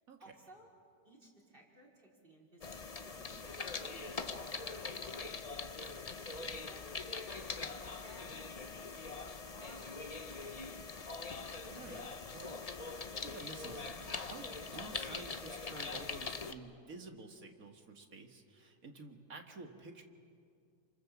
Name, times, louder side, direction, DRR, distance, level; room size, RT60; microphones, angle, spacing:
voice 1, 0.2-0.7 1.0-5.6 6.1-9.3 9.5-10.6, right 1 dB, 30° right, -1 dB, 4.5 m, -60 dB
Browsing the Internet, 2.6-16.5, left 4 dB, 35° left, 0.6 m, -43 dB
voice 2, 11.6-20.0, right 3 dB, 55° right, 4 dB, 2.3 m, -51 dB
29.0 x 26.0 x 7.4 m, 2.4 s
omnidirectional pair, 1.8 m